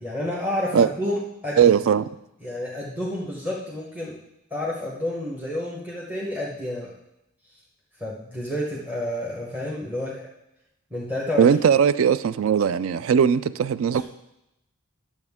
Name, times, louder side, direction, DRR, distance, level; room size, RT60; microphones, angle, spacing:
voice 1, 0.0-1.6 2.4-4.2 4.5-6.9 8.0-10.2 10.9-11.5 13.9-14.0, left 1 dB, 5° right, 1.0 m, -30 dB
voice 2, 1.6-2.1 11.4-14.0, right 7 dB, 60° right, 0.3 m, -19 dB
10.0 x 7.1 x 3.6 m
head